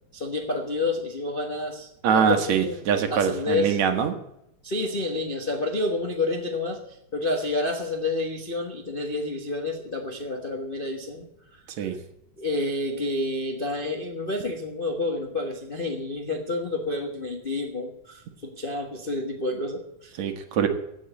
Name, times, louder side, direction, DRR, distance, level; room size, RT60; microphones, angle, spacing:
voice 1, 0.1-2.8 3.1-3.8 4.6-11.3 11.5-11.9 12.4-20.2, left 2 dB, 80° left, 1 dB, 0.4 m, -29 dB
voice 2, 2.0-4.1 11.8-12.0 20.2-20.7, right 7 dB, 65° right, 7 dB, 2.5 m, -23 dB
16.5 x 6.3 x 8.2 m, 0.82 s
omnidirectional pair, 3.5 m